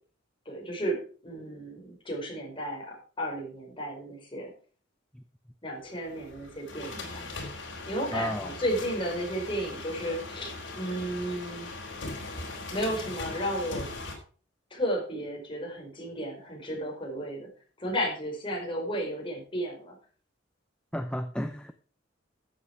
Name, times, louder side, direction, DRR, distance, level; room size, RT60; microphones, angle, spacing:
voice 1, 0.4-4.5 5.6-7.3 7.9-11.7 12.7-13.9 14.7-17.5 17.8-20.0, equal, 25° left, 0 dB, 4.8 m, -33 dB
sound 1, 6.0-14.2, left 2 dB, 65° left, 4.1 m, -40 dB
voice 2, 8.1-8.5 20.9-21.7, equal, 5° left, 8 dB, 0.6 m, -33 dB
13.0 x 8.0 x 4.8 m, 0.41 s
head